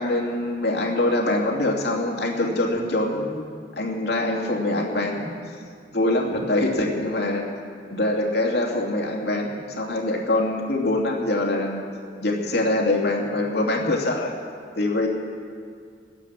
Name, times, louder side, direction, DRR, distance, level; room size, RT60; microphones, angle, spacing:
voice 1, 0.0-3.5 3.8-5.3 5.9-7.5 7.9-11.8 12.2-14.3 14.7-15.1, left 2 dB, 65° left, -1 dB, 2.7 m, -24 dB
18.0 x 10.0 x 7.5 m, 2.2 s
head